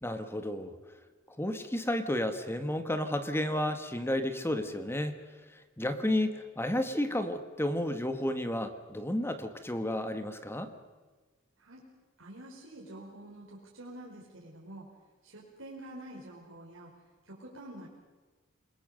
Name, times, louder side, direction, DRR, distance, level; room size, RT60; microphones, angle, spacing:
voice 1, 0.0-0.7 1.3-5.2 5.8-10.7, left 1 dB, 10° left, 9 dB, 1.5 m, -32 dB
voice 2, 12.2-14.9 15.2-16.9 17.2-17.9, right 1 dB, 70° right, -5 dB, 4.8 m, -47 dB
28.0 x 21.0 x 6.6 m, 1.3 s
head